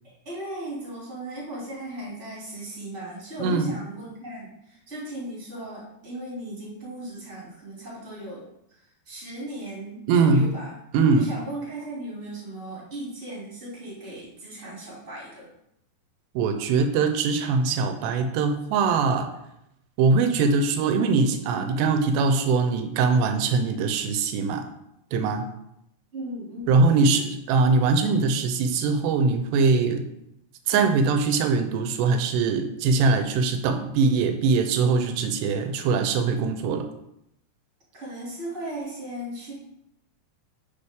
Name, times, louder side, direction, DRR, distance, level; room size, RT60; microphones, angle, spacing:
voice 1, 0.0-10.8 11.2-15.5 26.1-27.1 37.9-39.5, right 1 dB, 20° right, -6 dB, 2.2 m, -37 dB
voice 2, 3.4-3.7 10.1-10.5 10.9-11.3 16.4-19.3 20.0-24.6 25.1-25.4 26.7-30.1 30.7-36.9, right 4 dB, 80° right, 7 dB, 2.8 m, -22 dB
9.6 x 5.0 x 3.6 m, 0.81 s
omnidirectional pair, 5.0 m